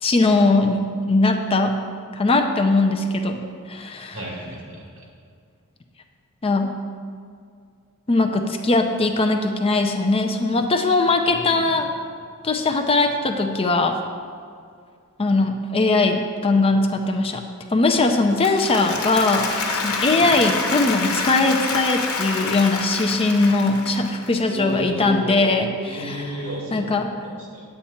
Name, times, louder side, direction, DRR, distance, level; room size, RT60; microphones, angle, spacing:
voice 1, 0.0-1.8 2.1-3.4 3.7-4.2 6.4-6.7 8.1-11.9 12.4-14.0 15.2-17.4 17.7-26.3 26.7-27.1, left 2 dB, 25° left, 4 dB, 0.5 m, -20 dB
voice 2, 4.1-4.9 11.3-11.7 20.1-20.3 24.5-26.9 27.2-27.6, right 1 dB, 60° right, -3 dB, 2.6 m, -32 dB
Applause, 18.2-24.4, left 4 dB, 80° left, 1.1 m, -27 dB
9.0 x 8.5 x 4.3 m, 2.2 s
head